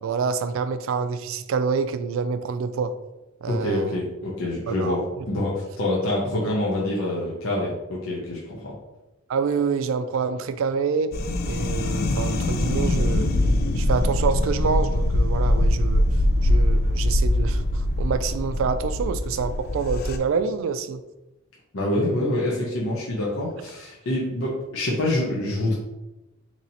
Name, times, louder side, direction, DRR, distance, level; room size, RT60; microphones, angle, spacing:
voice 1, 0.0-2.9 3.4-4.0 4.7-5.0 9.3-11.1 11.5-13.3 13.8-16.1 16.4-21.0, right 5 dB, 75° right, 11 dB, 0.3 m, -27 dB
voice 2, 3.5-8.7 21.7-25.8, left 1 dB, 90° left, -4 dB, 0.8 m, -26 dB
sound 1, 11.1-20.2, left 1 dB, 50° left, 0.3 m, -22 dB
2.9 x 2.8 x 4.0 m, 0.96 s
head